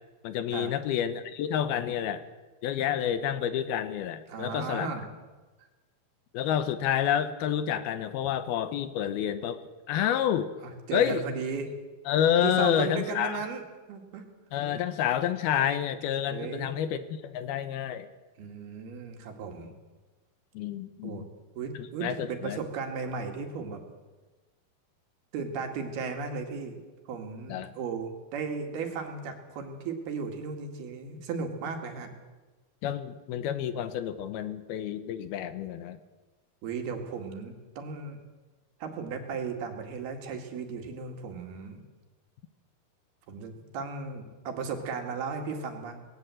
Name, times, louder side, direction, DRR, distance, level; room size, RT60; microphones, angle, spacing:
voice 1, 0.2-2.2 2.6-4.9 6.3-9.6 9.9-10.5 10.9-11.2 12.1-13.4 14.5-18.1 20.5-21.2 22.0-22.6 27.5-27.7 32.8-36.0, left 10 dB, 80° left, 11 dB, 2.8 m, -29 dB
voice 2, 4.3-5.0 10.6-11.7 12.4-13.6 13.9-14.2 14.6-14.8 16.3-16.8 18.4-19.7 21.0-21.3 21.6-23.8 25.3-26.8 27.1-32.1 36.6-38.2 38.8-41.8 43.3-46.1, right 5 dB, 75° right, 4 dB, 4.0 m, -35 dB
19.5 x 18.0 x 7.8 m, 1.2 s
omnidirectional pair, 4.6 m